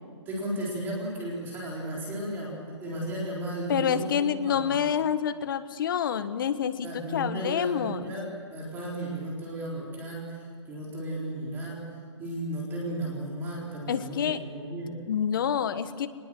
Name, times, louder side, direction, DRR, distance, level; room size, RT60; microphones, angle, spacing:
voice 1, 0.3-4.8 6.8-15.0, right 1 dB, 15° right, -4 dB, 4.1 m, -34 dB
voice 2, 3.7-8.1 13.9-14.4 15.1-16.1, left 8 dB, 45° left, 11 dB, 1.3 m, -27 dB
24.0 x 20.5 x 7.8 m, 2.1 s
hypercardioid pair, 165°, 16 cm